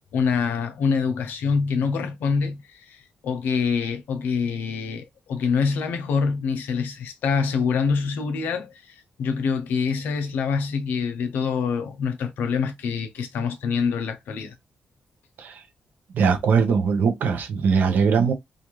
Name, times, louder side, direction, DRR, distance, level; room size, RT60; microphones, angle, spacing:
voice 1, 0.1-14.5, left 5 dB, 90° left, 0.6 m, -25 dB
voice 2, 16.1-18.3, right 6 dB, 75° right, 0.7 m, -21 dB
2.5 x 2.4 x 3.0 m
cardioid pair, 80°, 3 cm